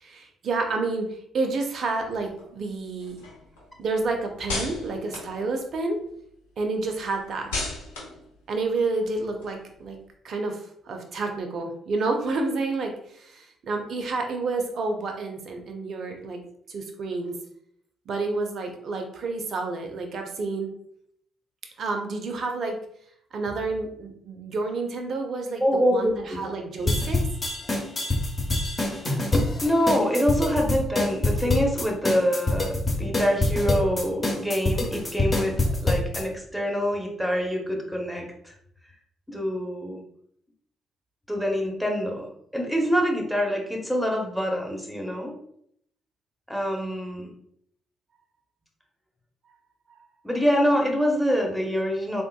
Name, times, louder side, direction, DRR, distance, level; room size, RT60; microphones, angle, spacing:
voice 1, 0.0-3.2 3.8-6.0 6.6-7.6 8.5-10.0 10.2-16.4 16.7-17.4 18.1-20.7 21.8-22.8 23.3-27.3, right 3 dB, 55° right, 4 dB, 0.6 m, -29 dB
sound 1, 2.0-6.1 6.5-10.0, left 3 dB, 80° left, 0.6 m, -37 dB
voice 2, 25.6-26.5 29.3-38.6 39.3-40.0 41.3-42.3 42.5-45.3 46.5-47.3 50.2-52.2, equal, ahead, 1 dB, 0.9 m, -25 dB
sound 2, 26.9-36.2, left 2 dB, 35° left, 1.0 m, -25 dB
3.5 x 2.5 x 2.3 m, 0.69 s
figure-of-eight pair, 45°, 0 cm